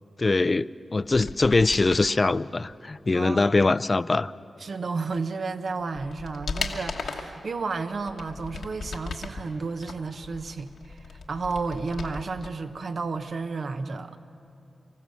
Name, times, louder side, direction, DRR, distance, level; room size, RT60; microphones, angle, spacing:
voice 1, 0.2-4.3, left 3 dB, 40° left, 17 dB, 0.4 m, -23 dB
sound 1, 1.0-2.1 5.1-5.2 5.7-7.4 7.9-9.4 9.8-12.5 12.8-12.9, left 4 dB, 85° left, 1.4 m, -36 dB
voice 2, 3.1-3.5 4.6-14.2, right 4 dB, 65° right, 9 dB, 0.9 m, -32 dB
24.5 x 15.0 x 7.0 m, 2.8 s
cardioid pair, 50°, 0 cm